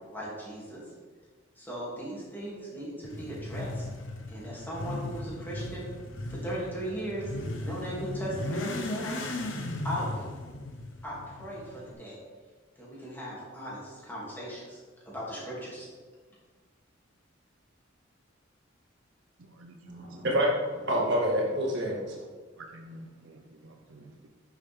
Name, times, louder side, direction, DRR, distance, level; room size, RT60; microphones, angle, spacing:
voice 1, 0.1-0.8 1.6-3.8 4.3-5.9 6.3-9.2 9.8-10.3 11.0-12.2 12.8-14.8 15.1-15.9, right 1 dB, 10° left, -7 dB, 3.0 m, -37 dB
Motorcycle / Accelerating revving vroom, 3.0-11.9, left 2 dB, 75° left, 1.0 m, -37 dB
voice 2, 19.9-22.2, equal, 60° right, -2 dB, 2.1 m, -28 dB
voice 3, 22.6-24.3, right 1 dB, 85° right, 2 dB, 0.7 m, -49 dB
9.7 x 7.1 x 3.8 m, 1.4 s
head